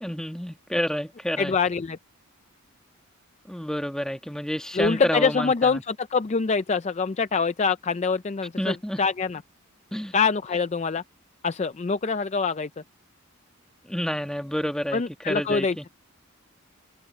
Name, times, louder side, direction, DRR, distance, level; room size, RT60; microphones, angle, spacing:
voice 1, 0.0-1.5 3.5-5.8 8.6-9.0 9.9-10.1 13.9-15.8, equal, 5° left, 1.5 m, -29 dB
voice 2, 1.4-2.0 4.7-9.4 10.1-11.0 11.4-12.7 14.9-15.9, left 5 dB, 30° left, 0.4 m, -25 dB
head